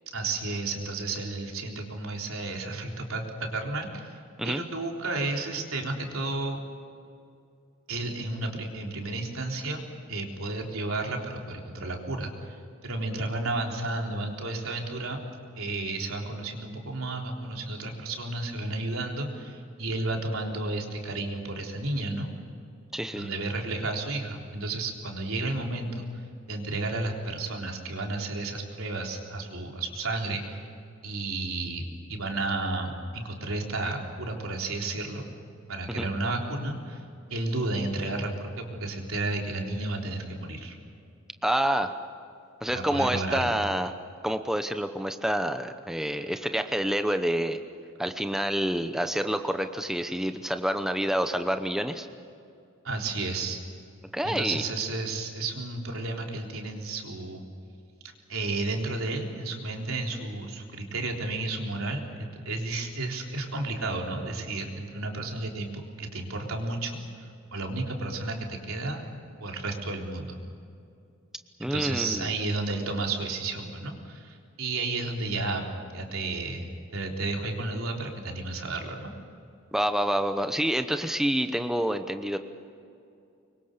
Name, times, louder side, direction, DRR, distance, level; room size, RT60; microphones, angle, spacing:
voice 1, 0.1-4.2 4.4-6.6 7.9-15.2 15.6-22.3 23.1-26.0 26.5-30.6 31.0-35.2 35.7-37.0 37.3-40.7 42.7-43.6 52.8-53.6 54.2-57.5 58.3-67.0 67.5-69.0 69.4-70.4 71.6-75.6 75.9-79.1, right 2 dB, 90° right, 1 dB, 3.7 m, -32 dB
voice 2, 22.9-23.3 35.9-36.1 41.4-41.9 42.6-43.9 44.2-47.6 48.0-52.1 54.1-54.6 71.6-72.3 79.7-82.4, equal, ahead, 7 dB, 0.8 m, -28 dB
25.5 x 23.0 x 6.8 m, 2.5 s
head